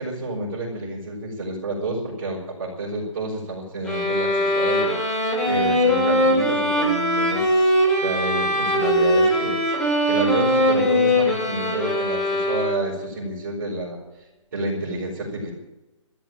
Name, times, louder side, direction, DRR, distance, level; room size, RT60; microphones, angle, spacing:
voice 1, 0.0-7.7 8.0-14.0 14.5-15.5, right 2 dB, 30° right, -9 dB, 4.8 m, -29 dB
sound 1, 3.8-13.1, equal, 5° left, 1.2 m, -21 dB
13.0 x 11.5 x 9.0 m, 1.0 s
hypercardioid pair, 180°, 17 cm